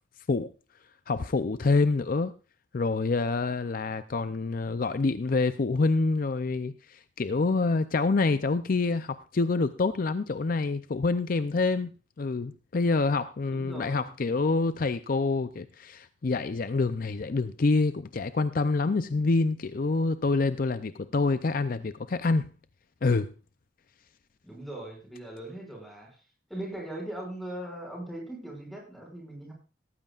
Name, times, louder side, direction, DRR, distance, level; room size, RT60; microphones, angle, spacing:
voice 1, 1.1-2.3 2.7-11.9 12.2-22.5 23.0-23.3, left 3 dB, 50° left, 12 dB, 0.5 m, -27 dB
voice 2, 13.5-14.1 24.4-26.1 26.5-29.5, right 1 dB, ahead, -1 dB, 5.7 m, -39 dB
17.5 x 14.5 x 2.4 m, 0.33 s
head